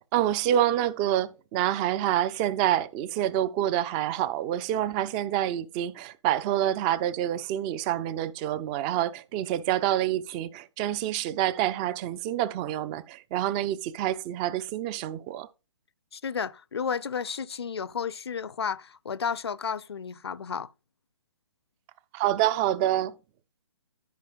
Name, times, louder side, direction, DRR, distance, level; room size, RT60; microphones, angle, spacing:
voice 1, 0.1-15.5 22.1-23.2, right 12 dB, 15° right, 0.4 m, -27 dB
voice 2, 16.1-20.7, left 6 dB, 60° left, 0.6 m, -32 dB
13.5 x 5.4 x 2.3 m
figure-of-eight pair, 130°, 15 cm